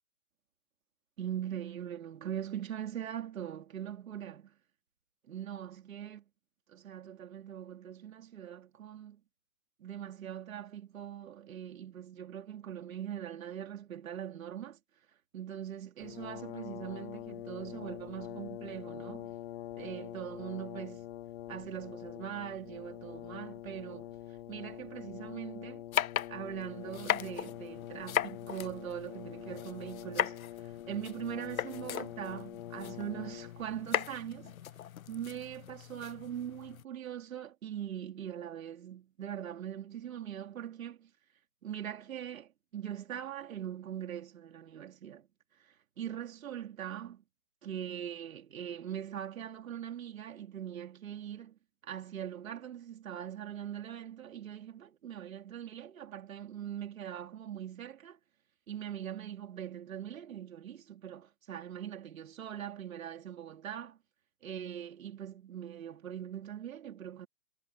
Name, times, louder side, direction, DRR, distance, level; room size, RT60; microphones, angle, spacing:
voice 1, 1.2-4.5 5.3-6.2 6.7-9.2 9.8-14.8 15.3-19.3 19.7-21.1 21.5-24.1 24.5-25.8 26.3-34.6 35.1-41.1 41.6-45.3 45.6-47.2 47.6-58.2 58.7-64.0 64.4-67.3, right 10 dB, 70° right, 4.3 m, -41 dB
Brass instrument, 16.0-33.8, left 13 dB, 45° left, 1.1 m, -45 dB
sound 1, 25.9-36.8, left 10 dB, 75° left, 1.1 m, -38 dB
hypercardioid pair, 150°, 42 cm